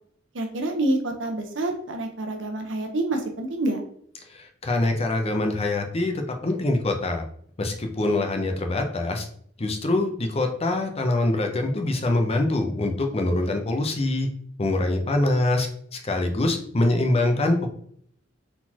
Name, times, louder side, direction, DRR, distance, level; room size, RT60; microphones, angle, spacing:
voice 1, 0.3-3.8, right 2 dB, 70° right, 4 dB, 0.9 m, -27 dB
voice 2, 4.3-7.2 7.6-9.3 9.6-14.3 14.6-17.7, left 2 dB, 30° left, 4 dB, 0.6 m, -24 dB
4.1 x 4.0 x 2.9 m, 0.62 s
head